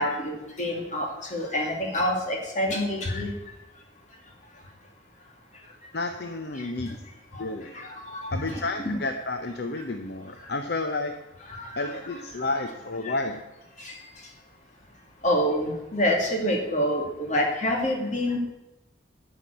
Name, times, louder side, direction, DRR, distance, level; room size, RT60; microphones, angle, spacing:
voice 1, 0.0-3.3 7.3-7.4 7.7-9.0 11.5-11.9 13.0-13.1 13.8-13.9 15.2-18.4, left 1 dB, 40° left, 1 dB, 2.4 m, -27 dB
voice 2, 5.9-6.9 7.4-7.8 8.3-11.2 11.7-13.5, left 2 dB, 55° left, 6 dB, 0.7 m, -31 dB
12.0 x 5.9 x 8.3 m, 0.98 s
head